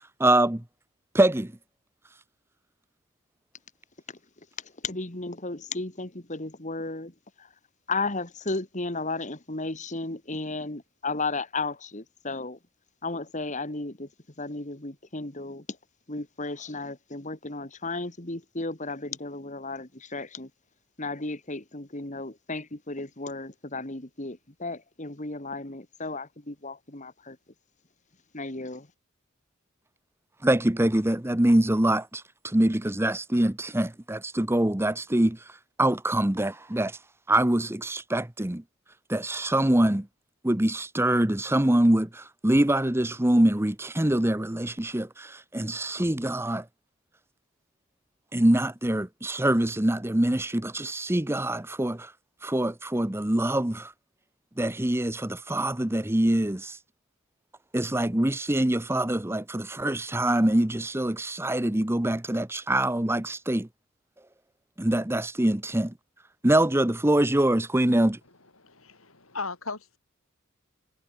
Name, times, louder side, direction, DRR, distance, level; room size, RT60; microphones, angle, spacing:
voice 1, 0.2-0.6 1.1-1.5 30.4-35.4 35.8-37.0 37.3-38.6 39.1-40.1 40.4-46.6 48.3-52.1 52.4-53.9 54.6-56.8 57.7-63.7 64.8-65.9 66.4-68.2, right 1 dB, 10° right, 0.9 m, -24 dB
voice 2, 4.6-7.1 7.4-7.5 7.9-12.6 13.0-14.1 14.4-15.8 16.1-20.5 21.0-27.4 28.3-28.9, left 3 dB, 35° left, 2.4 m, -34 dB
voice 3, 68.3-70.0, left 4 dB, 80° left, 7.7 m, -38 dB
head